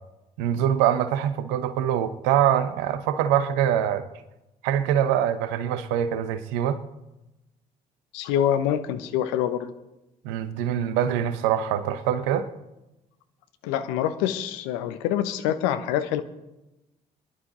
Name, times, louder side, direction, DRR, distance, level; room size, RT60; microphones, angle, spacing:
voice 1, 0.4-4.0 4.6-6.8 10.2-12.5, right 10 dB, 70° right, 1.0 m, -24 dB
voice 2, 8.1-9.7 13.6-16.2, left 10 dB, 70° left, 1.0 m, -25 dB
23.5 x 11.0 x 4.0 m
figure-of-eight pair, 50°, 20 cm